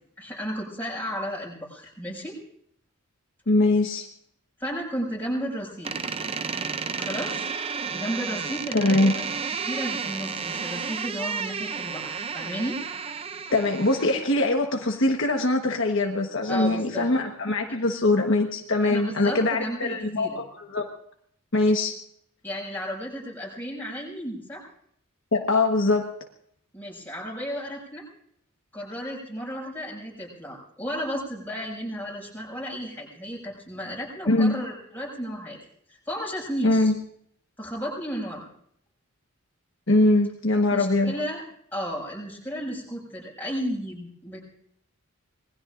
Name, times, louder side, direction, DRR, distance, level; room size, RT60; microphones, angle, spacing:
voice 1, 0.2-2.4 4.6-6.1 7.0-7.5 7.9-9.2 9.6-12.8 16.5-17.1 18.8-20.4 22.4-24.6 26.7-28.1 28.7-35.6 35.9-36.9 37.6-38.4 40.7-41.4 41.7-44.4, equal, 10° left, -4 dB, 6.3 m, -33 dB
voice 2, 3.5-4.1 8.7-9.1 13.5-20.4 20.7-20.9 21.5-21.9 25.3-26.1 34.3-34.5 36.6-36.9 39.9-41.1, left 2 dB, 55° left, 2 dB, 1.3 m, -22 dB
Door, 5.8-14.3, right 5 dB, 25° right, 0.5 m, -32 dB
26.5 x 20.5 x 2.6 m, 0.68 s
head